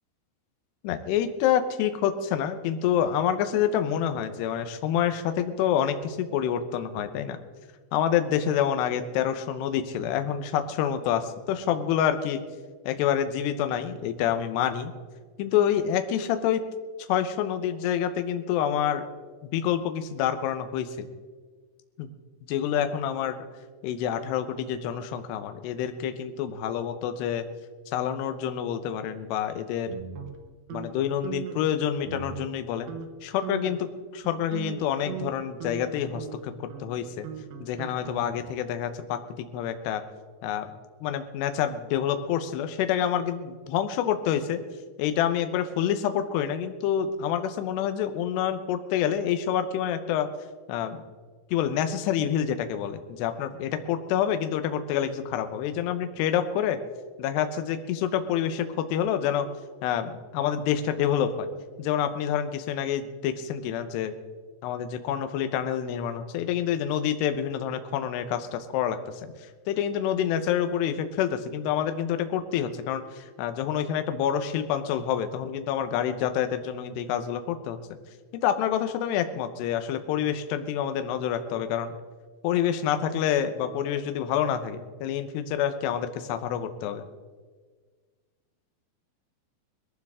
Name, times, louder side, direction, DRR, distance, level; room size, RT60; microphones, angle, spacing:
voice 1, 0.8-7.4 7.9-12.4 12.9-14.9 15.4-16.6 17.1-19.1 19.5-21.1 22.0-22.1 22.5-23.4 23.8-27.4 27.9-30.0 30.7-32.9 33.2-36.5 36.8-37.3 37.6-40.0 40.4-40.7 41.0-44.6 45.0-50.3 50.7-51.0 51.5-56.8 57.2-59.5 59.8-61.5 61.8-64.1 64.6-69.3 69.7-77.8 78.4-81.9 82.4-87.1, left 9 dB, 75° left, 9 dB, 2.7 m, -27 dB
sound 1, 29.9-30.9 31.2-31.7 32.1-32.6 32.9-33.1 33.4-33.9 34.3-38.6, right 8 dB, 70° right, 3.1 m, -39 dB
21.0 x 14.5 x 3.6 m, 1.5 s
omnidirectional pair, 5.5 m